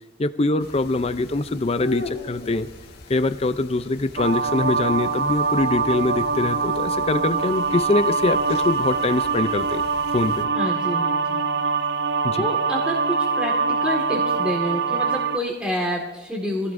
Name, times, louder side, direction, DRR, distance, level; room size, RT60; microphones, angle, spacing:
voice 1, 0.2-2.7 3.1-9.8 10.1-10.5 12.2-12.5, left 2 dB, 30° left, 12 dB, 0.5 m, -23 dB
sound 1, 0.6-10.4, left 2 dB, 50° left, 1.7 m, -40 dB
sound 2, 4.2-15.4, right 4 dB, 55° right, 0.5 m, -23 dB
voice 2, 10.5-11.4 12.4-13.5 13.8-16.7, equal, 5° right, -2 dB, 1.8 m, -28 dB
23.0 x 15.5 x 2.6 m, 1.1 s
head